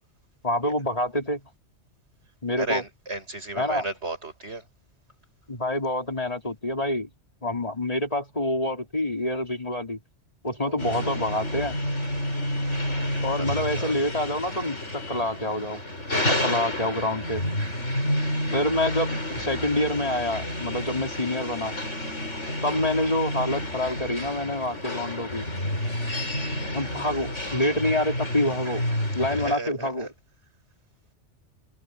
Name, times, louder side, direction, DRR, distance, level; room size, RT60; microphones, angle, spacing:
voice 1, 0.4-1.4 2.4-2.8 3.6-3.9 5.5-7.1 7.4-10.0 10.4-11.7 13.2-15.8 16.2-17.4 18.5-21.8 22.6-25.5 26.7-28.8 29.2-30.1, left 1 dB, 30° left, 3.3 m, -27 dB
voice 2, 2.6-4.6 10.6-11.2 12.9-13.4 13.8-13.9 20.8-21.0 22.4-22.7 25.8-26.9 29.3-30.1, right 2 dB, 70° right, 7.0 m, -36 dB
sound 1, 10.8-29.5, left 1 dB, 80° left, 7.2 m, -30 dB
omnidirectional pair, 1.2 m